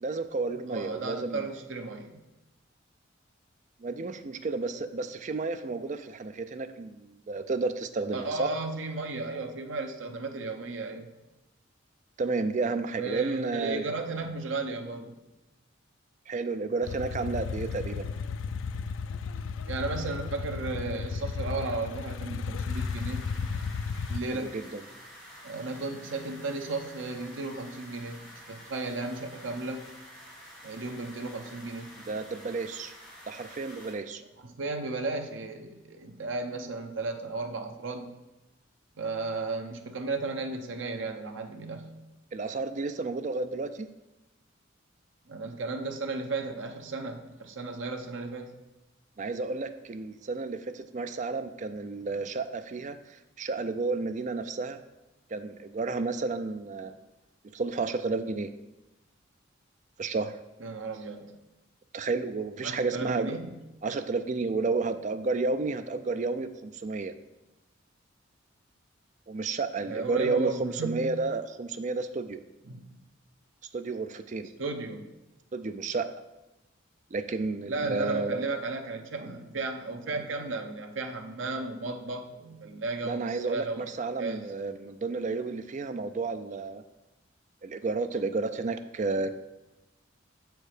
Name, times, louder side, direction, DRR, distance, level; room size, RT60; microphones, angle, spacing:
voice 1, 0.0-1.5 3.8-8.5 12.2-13.8 16.3-18.1 24.3-24.8 32.0-32.9 33.3-34.2 42.3-43.9 49.2-54.8 55.3-56.9 57.5-58.5 60.0-60.4 61.9-63.4 63.8-67.1 69.3-72.4 73.7-74.5 75.5-76.1 77.1-78.5 83.0-86.8 87.6-89.3, right 3 dB, 40° right, 10 dB, 0.4 m, -31 dB
voice 2, 0.7-2.3 4.7-4.9 8.1-11.1 12.9-15.1 19.7-23.3 24.1-24.5 25.4-29.9 30.6-31.9 34.4-38.1 39.0-41.9 45.3-48.6 60.6-61.4 62.6-63.5 69.8-71.1 72.7-72.8 74.6-75.1 77.7-83.9 84.2-84.4, right 3 dB, 75° right, 5 dB, 0.7 m, -34 dB
sound 1, 16.8-24.2, left 5 dB, 70° left, 0.3 m, -34 dB
sound 2, 22.7-33.9, equal, 5° left, 1.7 m, -49 dB
7.2 x 4.6 x 4.9 m, 1.0 s
head